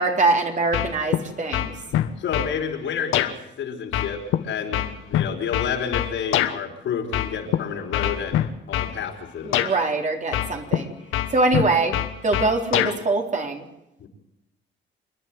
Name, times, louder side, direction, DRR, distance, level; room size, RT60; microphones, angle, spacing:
voice 1, 0.0-1.7 9.4-10.9 11.3-12.0 12.2-13.6, right 3 dB, 40° right, 3 dB, 4.0 m, -23 dB
sound 1, 0.7-1.2 1.5-2.5 3.1-3.3 3.9-6.6 7.1-7.6 7.9-8.9 9.5-9.7 10.3-10.8 11.1-13.0, left 12 dB, 90° left, 1.4 m, -23 dB
voice 2, 2.2-3.3 3.6-4.8 5.1-8.4 8.7-9.6 14.0-14.1, left 7 dB, 75° left, 2 dB, 4.8 m, -29 dB
28.0 x 10.5 x 9.3 m, 0.86 s
cardioid pair, 90°, 20 cm